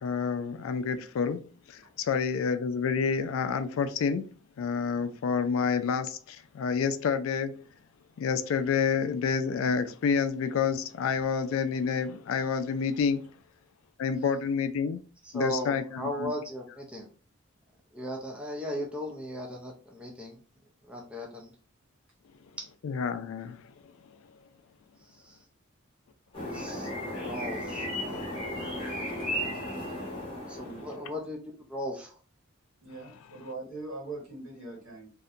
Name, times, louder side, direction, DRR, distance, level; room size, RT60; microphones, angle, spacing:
voice 1, 0.0-4.3 4.6-7.6 8.2-13.3 14.0-15.0 15.3-16.3 22.8-23.6 26.6-26.7, left 6 dB, 75° left, 0.3 m, -29 dB
voice 2, 15.3-17.1 17.9-20.4 20.9-21.5 22.6-22.7 25.2-25.4 26.5-28.3 30.5-31.4 31.7-32.1, equal, 5° right, 0.5 m, -37 dB
sound 1, 26.3-31.2, left 1 dB, 30° left, 0.9 m, -35 dB
voice 3, 32.8-35.1, right 3 dB, 80° right, 1.5 m, -41 dB
2.7 x 2.1 x 2.4 m
head